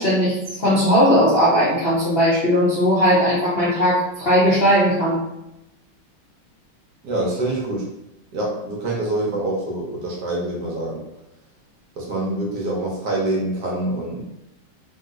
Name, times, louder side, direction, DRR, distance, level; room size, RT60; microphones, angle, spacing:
voice 1, 0.0-5.2, equal, 85° left, -9 dB, 0.5 m, -18 dB
voice 2, 7.0-7.9 8.3-11.0 12.0-14.2, right 1 dB, 65° right, -3 dB, 1.0 m, -25 dB
3.0 x 2.8 x 2.5 m, 0.88 s
omnidirectional pair, 2.3 m